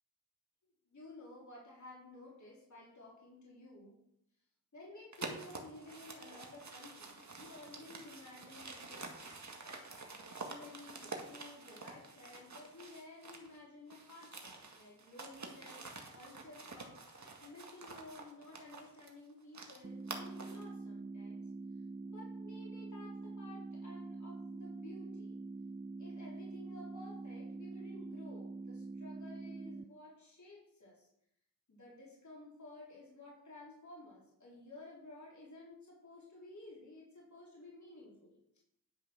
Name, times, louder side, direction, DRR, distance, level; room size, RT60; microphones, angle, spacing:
voice 1, 0.9-4.0 4.7-21.5 22.0-25.4 26.0-31.1 31.7-38.4, left 2 dB, 50° left, -5 dB, 4.1 m, -54 dB
sound 1, 5.1-13.6 13.9-20.7, right 3 dB, 50° right, 2.0 m, -48 dB
sound 2, 19.8-29.8, right 3 dB, 20° right, 0.4 m, -45 dB
10.5 x 5.7 x 6.1 m, 0.76 s
cardioid pair, 45°, 37 cm